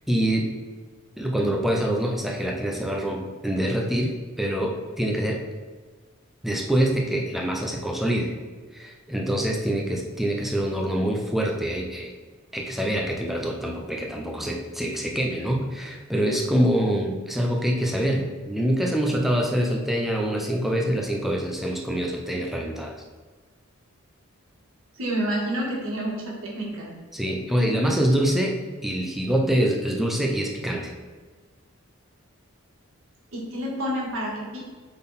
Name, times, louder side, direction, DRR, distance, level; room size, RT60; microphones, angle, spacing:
voice 1, 0.1-0.5 1.2-5.4 6.4-8.3 8.7-12.1 12.5-23.0 27.1-30.9, right 1 dB, ahead, 0 dB, 0.6 m, -25 dB
voice 2, 25.0-26.9 33.3-34.6, right 1 dB, 70° right, -4 dB, 1.8 m, -29 dB
7.3 x 3.9 x 4.1 m, 1.4 s
head